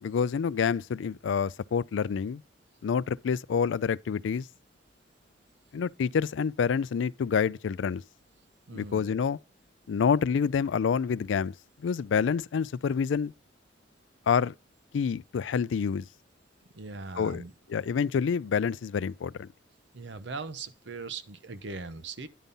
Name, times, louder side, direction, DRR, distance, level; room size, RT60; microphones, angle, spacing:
voice 1, 0.0-2.4 2.8-4.5 5.7-8.0 8.7-9.4 9.9-11.5 11.8-13.3 14.3-14.5 14.9-16.1 17.2-17.4 17.7-19.5, left 6 dB, 85° left, 0.4 m, -27 dB
voice 2, 8.7-9.1 16.7-17.5 19.9-22.3, right 4 dB, 70° right, 0.8 m, -40 dB
10.5 x 5.3 x 4.0 m
head